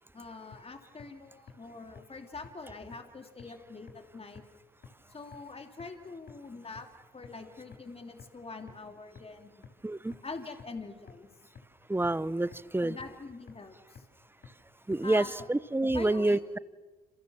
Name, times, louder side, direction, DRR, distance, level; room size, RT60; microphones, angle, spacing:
voice 1, 0.1-4.4 5.1-6.9 7.1-9.7 10.2-11.3 12.8-14.1 15.0-15.5 15.9-16.5, left 3 dB, 30° left, 5 dB, 3.2 m, -44 dB
sound 1, 0.5-0.6 1.0-1.1 1.5-1.6 2.0-2.1 2.4-2.5 2.9-3.0 3.4-3.5 3.9-4.0 4.4-4.5 4.8-4.9 5.3-5.4 5.8-5.9 6.3-6.4 6.8-6.9 7.2-7.3 7.7-7.8 8.2-8.3 8.7-8.8 9.2-9.3 9.6-9.7 10.1-10.2 10.6-10.7 11.1-11.2 11.6-11.7 12.0-12.1 12.5-12.6 13.0-13.1 13.5-13.6 14.0-14.1 14.4-14.5 14.9-15.0 15.4-15.5, left 6 dB, 50° left, 4.7 m, -48 dB
voice 2, 9.8-10.2 11.9-12.9 14.9-16.6, right 2 dB, 10° right, 18 dB, 0.9 m, -28 dB
27.5 x 27.0 x 7.4 m, 1.3 s
supercardioid pair, 60°, 21 cm